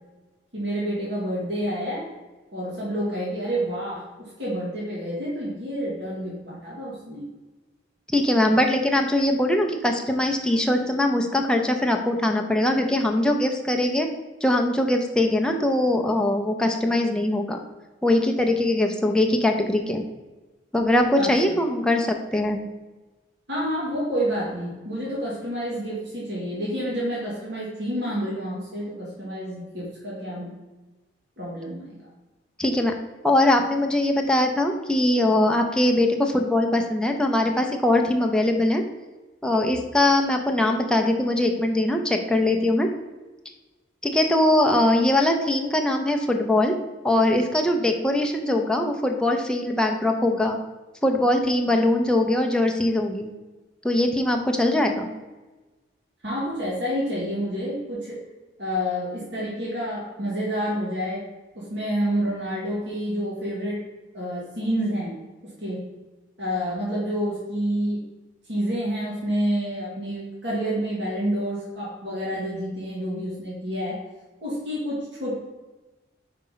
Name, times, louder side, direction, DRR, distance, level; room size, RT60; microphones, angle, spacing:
voice 1, 0.5-2.1 2.5-7.3 21.2-21.6 23.5-30.5 31.4-32.0 56.2-58.2 58.6-61.3 61.6-63.8 64.1-65.1 65.6-65.9 66.4-68.1 68.5-74.0 74.4-75.3, equal, 65° right, -7 dB, 1.9 m, -28 dB
voice 2, 8.1-14.1 14.4-17.6 18.0-20.0 20.7-22.6 32.6-32.9 33.2-38.8 39.4-42.9 44.0-46.8 47.0-50.6 51.0-53.3 53.8-55.1, left 1 dB, 5° left, 2 dB, 0.6 m, -21 dB
5.1 x 4.3 x 5.6 m, 1.2 s
head